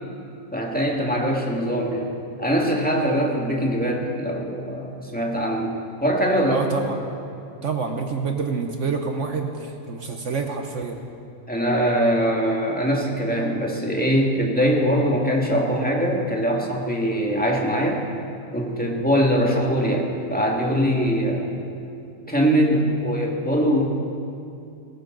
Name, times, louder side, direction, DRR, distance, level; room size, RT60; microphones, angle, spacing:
voice 1, 0.5-2.1 2.4-5.7 6.0-6.6 11.5-18.0 18.5-21.5 22.3-23.8, equal, 5° left, -2 dB, 1.9 m, -22 dB
voice 2, 6.5-7.0 7.6-11.0 18.7-19.1, right 5 dB, 55° right, 4 dB, 1.1 m, -27 dB
19.5 x 17.0 x 3.9 m, 2.7 s
omnidirectional pair, 1.8 m